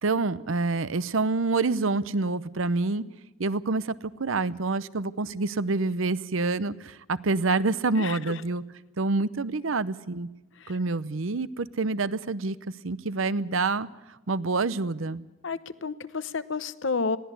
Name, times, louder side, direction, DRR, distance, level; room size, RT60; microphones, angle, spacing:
voice 1, 0.0-3.0 3.4-8.6 9.0-10.3 10.7-12.6 12.8-13.9 14.3-15.2, right 3 dB, 80° right, 16 dB, 0.8 m, -27 dB
voice 2, 8.0-8.3 10.6-10.7 15.4-17.2, left 4 dB, 70° left, 14 dB, 0.9 m, -31 dB
21.5 x 16.0 x 8.3 m, 1.1 s
head